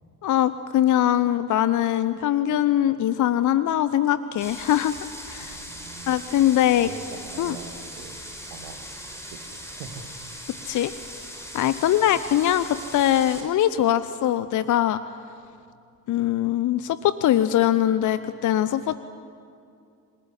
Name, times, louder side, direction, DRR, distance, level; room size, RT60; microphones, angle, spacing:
voice 1, 0.2-4.9 5.3-5.6 6.1-6.9 7.4-7.6 10.6-10.9 11.5-15.0 16.1-19.0, left 12 dB, 40° left, 14 dB, 0.8 m, -22 dB
sound 1, 4.4-13.4, equal, 5° left, 5.8 m, -39 dB
voice 2, 5.4-6.2 6.5-8.2 8.5-8.9 9.1-10.1 12.0-12.2, right 6 dB, 65° right, 7 dB, 2.2 m, -43 dB
27.5 x 20.0 x 9.9 m, 2.5 s
figure-of-eight pair, 50°, 47 cm